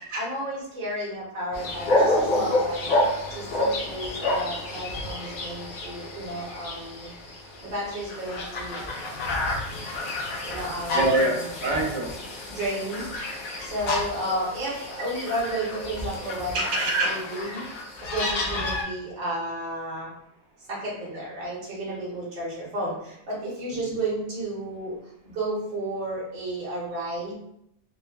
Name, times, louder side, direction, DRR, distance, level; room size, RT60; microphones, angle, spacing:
voice 1, 0.1-2.9 3.3-7.1 7.6-8.8 10.4-11.4 12.5-13.1 13.6-16.6 17.0-17.6 18.0-20.1 20.7-25.0 25.2-27.4, right 1 dB, 50° right, -6 dB, 0.8 m, -32 dB
sound 1, 1.5-18.8, left 1 dB, 60° left, 0.6 m, -29 dB
voice 2, 8.8-10.2 10.9-12.2 16.5-17.1 23.7-23.8, right 2 dB, 90° right, -1 dB, 1.0 m, -27 dB
3.1 x 2.0 x 2.2 m, 0.75 s
omnidirectional pair, 1.2 m